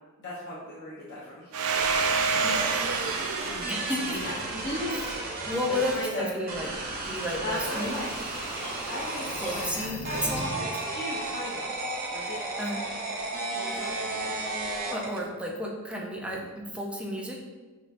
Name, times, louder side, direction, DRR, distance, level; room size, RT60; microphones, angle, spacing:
voice 1, 0.2-1.5 3.4-3.8 4.1-5.3 5.7-6.3 7.4-8.1 8.9-10.2 10.6-11.7 12.1-12.4 13.5-14.2, left 1 dB, 55° left, -8 dB, 0.8 m, -37 dB
Domestic sounds home sounds, 1.5-5.9, right 5 dB, 65° right, 0.4 m, -29 dB
sound 1, 1.7-6.0 6.5-9.7 10.0-15.2, right 2 dB, 40° right, 0.7 m, -34 dB
voice 2, 3.7-4.2 4.9-5.1 5.5-6.7 7.0-8.0 9.4-10.6 12.6-12.8 14.9-17.4, left 1 dB, 5° right, -2 dB, 0.5 m, -32 dB
sound 2, 7.2-10.7, left 1 dB, 85° left, 0.7 m, -39 dB
6.2 x 2.7 x 2.5 m, 1.3 s
head